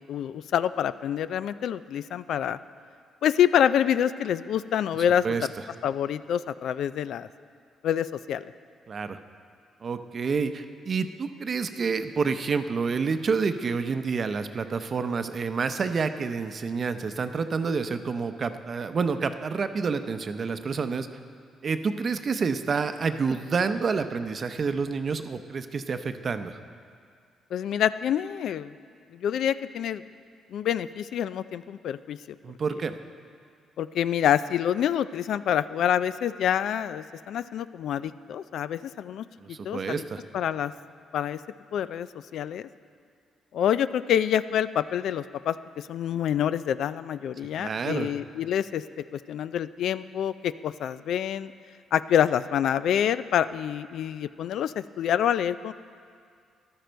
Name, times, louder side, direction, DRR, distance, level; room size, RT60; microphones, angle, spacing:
voice 1, 0.0-2.6 3.2-5.5 5.8-7.3 7.8-8.5 27.5-28.7 29.1-30.0 30.5-32.4 33.8-40.0 40.3-40.7 41.1-41.4 41.7-42.7 43.5-51.5 51.9-55.7, left 9 dB, 75° left, 15 dB, 0.3 m, -27 dB
voice 2, 8.9-9.2 9.8-21.1 21.6-26.6 32.4-32.9 39.4-40.2 47.6-48.1, right 5 dB, 45° right, 9 dB, 0.7 m, -28 dB
14.5 x 12.0 x 4.5 m, 2.2 s
cardioid pair, 90°, 0 cm